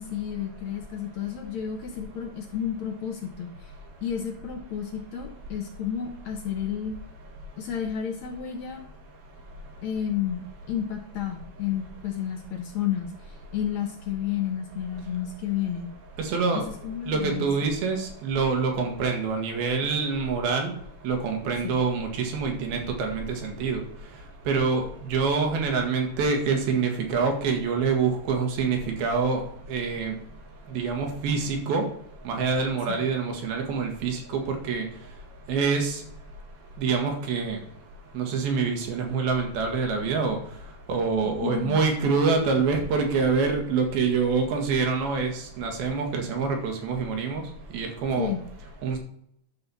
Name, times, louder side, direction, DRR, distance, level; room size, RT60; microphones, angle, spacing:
voice 1, 0.0-3.7 4.0-7.0 7.6-8.8 9.8-10.4 10.7-15.9 16.5-17.5 20.0-20.1 21.6-21.7 32.9-33.0 41.4-41.8 48.2-48.4, left 9 dB, 65° left, 3 dB, 2.0 m, -31 dB
voice 2, 16.2-16.6 17.1-20.7 21.0-23.8 24.5-29.4 29.7-30.1 30.7-31.8 32.3-34.2 34.5-34.9 35.5-36.0 36.8-37.6 38.2-40.4 40.9-47.4 47.7-48.3 48.8-49.0, right 5 dB, 85° right, 3 dB, 3.6 m, -26 dB
11.0 x 4.3 x 6.9 m, 0.70 s
omnidirectional pair, 4.2 m